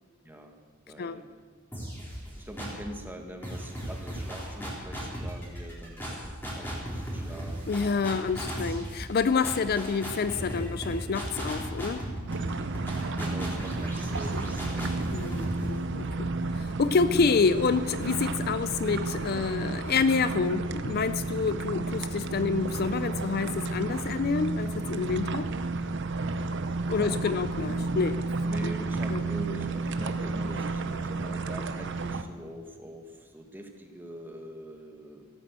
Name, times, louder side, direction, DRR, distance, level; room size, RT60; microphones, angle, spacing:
voice 1, 0.2-0.5 0.9-1.3 2.4-8.3 13.2-15.4 26.9-27.4 28.4-35.2, equal, 10° right, 4 dB, 1.4 m, -43 dB
sound 1, 1.7-2.9 3.4-17.1, equal, 10° left, 3.7 m, -37 dB
voice 2, 7.7-12.0 15.1-25.5 26.9-28.2 29.1-29.2, left 5 dB, 50° left, 13 dB, 0.4 m, -28 dB
sound 2, 12.3-32.2, right 3 dB, 60° right, 0.8 m, -32 dB
15.5 x 8.9 x 8.1 m, 1.5 s
head